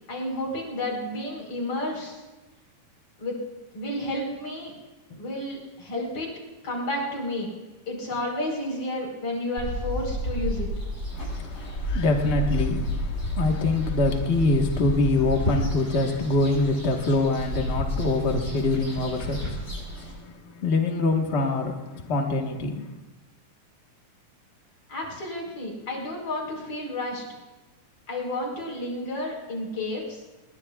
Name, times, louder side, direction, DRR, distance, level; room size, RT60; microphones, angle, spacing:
voice 1, 0.1-2.2 3.2-3.4 3.7-4.7 5.2-6.3 6.6-7.5 7.9-10.7 24.9-27.2 28.1-30.2, left 1 dB, 45° left, -2 dB, 5.3 m, -31 dB
sound 1, 9.6-20.1, equal, 30° left, 7.8 m, -31 dB
voice 2, 11.1-22.9, left 2 dB, 80° left, 2 dB, 0.5 m, -25 dB
27.0 x 21.5 x 2.4 m, 1.1 s
omnidirectional pair, 3.7 m